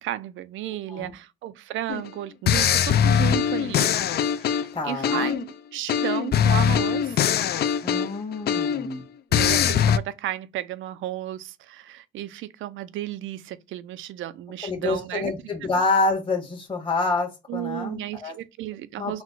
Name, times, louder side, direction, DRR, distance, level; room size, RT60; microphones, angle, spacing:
voice 1, 0.0-3.9 4.4-7.2 9.3-15.3 15.6-15.7 17.5-19.2, right 13 dB, 80° right, 0.5 m, -33 dB
sound 1, 1.9-2.1 2.5-5.5 5.9-8.9 9.3-10.0, left 8 dB, 55° left, 0.4 m, -22 dB
voice 2, 4.7-5.3 7.8-9.0 14.6-18.3 19.0-19.2, left 3 dB, 25° left, 1.4 m, -27 dB
4.0 x 2.2 x 4.5 m
cardioid pair, 90°, 20 cm